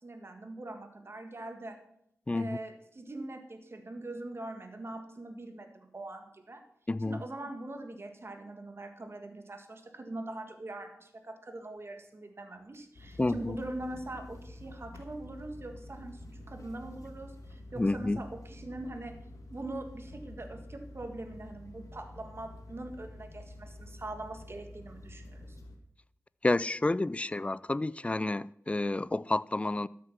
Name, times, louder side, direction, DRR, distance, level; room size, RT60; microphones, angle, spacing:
voice 1, 0.0-1.8 2.3-6.6 7.0-19.2 19.5-25.6, right 2 dB, 45° right, 1.7 m, -42 dB
voice 2, 2.3-2.6 6.9-7.2 13.2-13.6 17.8-18.2 26.4-29.9, left 2 dB, 20° left, 0.3 m, -30 dB
Drawer open or close, 11.5-12.0 12.5-17.7 18.4-18.6, right 2 dB, 65° right, 2.9 m, -65 dB
sound 1, 12.9-25.8, left 1 dB, 85° left, 1.4 m, -48 dB
13.0 x 6.6 x 5.9 m
cardioid pair, 55°, 6 cm